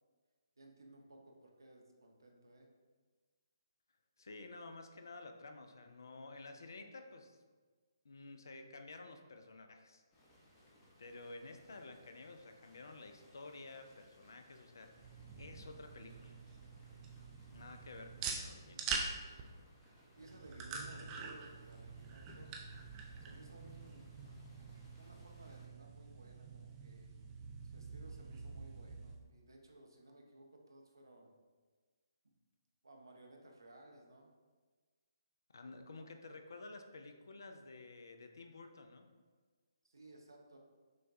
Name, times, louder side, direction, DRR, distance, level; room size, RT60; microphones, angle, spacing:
voice 1, 0.6-2.7 20.2-22.5 23.2-24.1 25.0-27.1 27.6-31.3 32.8-34.3 39.8-40.6, right 2 dB, 70° right, 1 dB, 0.6 m, -59 dB
voice 2, 4.2-7.4 8.0-10.0 11.0-14.9 15.4-16.4 17.5-18.9 35.5-39.1, left 3 dB, 60° left, 6 dB, 0.4 m, -52 dB
sound 1, 10.1-25.7, left 1 dB, 20° left, 0.7 m, -66 dB
sound 2, 14.9-29.1, right 5 dB, 20° right, 0.4 m, -46 dB
6.2 x 2.2 x 2.6 m, 1.4 s
figure-of-eight pair, 140°, 2 cm